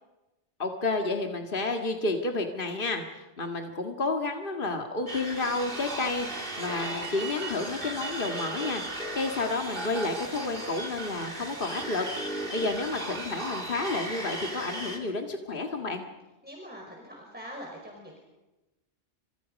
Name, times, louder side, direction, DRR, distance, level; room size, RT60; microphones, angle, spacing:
voice 1, 0.6-16.1, left 3 dB, 50° left, 3 dB, 2.1 m, -31 dB
sound 1, 5.1-15.0, right 1 dB, 50° right, 3.6 m, -36 dB
voice 2, 16.4-18.2, equal, 10° right, -1 dB, 5.1 m, -43 dB
29.5 x 27.0 x 5.3 m, 1.0 s
omnidirectional pair, 1.2 m